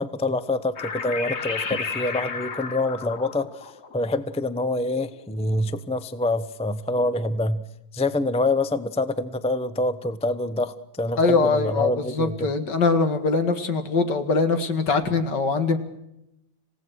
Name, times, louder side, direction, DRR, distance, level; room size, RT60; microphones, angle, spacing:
voice 1, 0.0-7.6 7.9-12.5, left 2 dB, 10° left, 13 dB, 0.4 m, -26 dB
sound 1, 0.8-5.6, left 5 dB, 40° left, 1.3 m, -33 dB
voice 2, 11.2-15.8, left 4 dB, 60° left, 9 dB, 2.6 m, -22 dB
27.5 x 17.5 x 6.4 m, 0.84 s
omnidirectional pair, 2.1 m